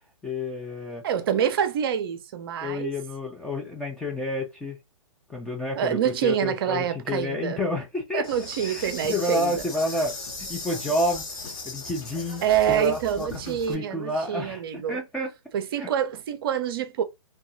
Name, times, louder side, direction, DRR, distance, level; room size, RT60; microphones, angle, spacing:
voice 1, 0.2-1.0 2.6-4.8 5.3-8.3 8.6-10.1 10.4-11.2 11.6-12.4 12.7-15.3 15.8-15.9, left 1 dB, 5° left, 0.3 m, -29 dB
voice 2, 1.0-2.9 5.8-7.6 8.1-9.6 12.4-15.0 15.5-17.0, right 9 dB, 45° right, 0.5 m, -26 dB
Insect, 8.2-13.7, left 3 dB, 25° left, 0.9 m, -38 dB
2.7 x 2.3 x 2.6 m
hypercardioid pair, 135°, 17 cm